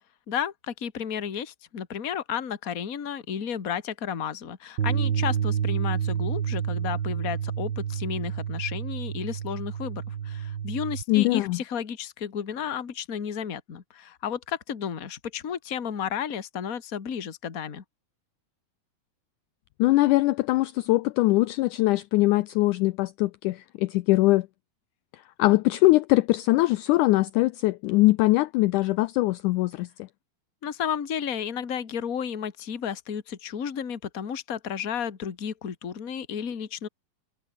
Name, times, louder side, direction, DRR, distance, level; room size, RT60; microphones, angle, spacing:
voice 1, 0.3-17.8 30.6-36.9, left 8 dB, 35° left, 1.5 m, -32 dB
Bass guitar, 4.8-11.0, right 8 dB, 55° right, 1.3 m, -29 dB
voice 2, 11.1-11.6 19.8-24.5 25.1-29.9, left 19 dB, 85° left, 1.7 m, -22 dB
omnidirectional pair, 4.2 m